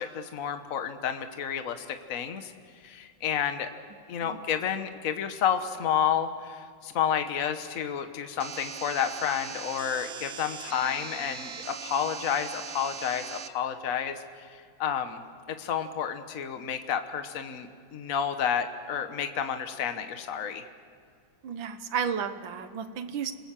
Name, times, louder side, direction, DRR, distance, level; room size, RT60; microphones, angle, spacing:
voice 1, 0.0-2.5 2.8-3.7 4.1-14.5 14.8-15.2 15.5-20.6, left 8 dB, 50° left, 8 dB, 1.4 m, -30 dB
sound 1, 8.4-13.5, right 6 dB, 45° right, 1.0 m, -40 dB
voice 2, 21.4-23.3, right 7 dB, 85° right, 10 dB, 1.9 m, -32 dB
28.5 x 19.5 x 7.6 m, 2.2 s
omnidirectional pair, 2.0 m